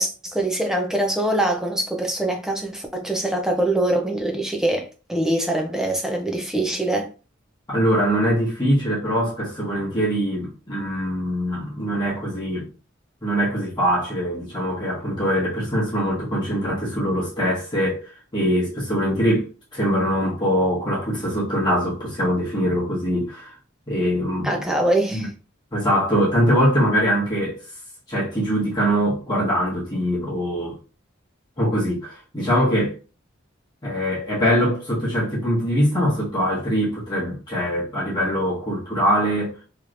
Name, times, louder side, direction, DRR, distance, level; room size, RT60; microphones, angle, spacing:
voice 1, 0.0-7.1 24.4-25.3, right 1 dB, 5° right, 0.5 m, -23 dB
voice 2, 7.7-12.7 13.2-23.6 23.9-24.6 25.1-25.2 25.7-27.6 28.1-30.8 31.6-33.0 33.8-39.5, equal, 20° left, 1.2 m, -22 dB
3.1 x 2.9 x 2.5 m
head